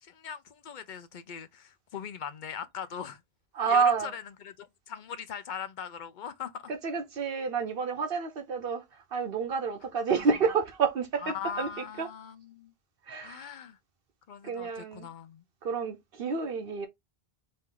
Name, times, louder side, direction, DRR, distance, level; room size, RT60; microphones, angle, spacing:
voice 1, 0.0-3.2 3.6-6.7 10.1-10.3 11.2-12.7 13.2-13.8 14.3-15.4, left 7 dB, 55° left, 0.8 m, -40 dB
voice 2, 3.5-4.1 6.8-8.8 9.1-11.7 12.0-12.1 13.1-13.5 14.4-15.1 15.6-16.9, right 5 dB, 65° right, 1.0 m, -29 dB
4.5 x 2.7 x 3.7 m
omnidirectional pair, 1.0 m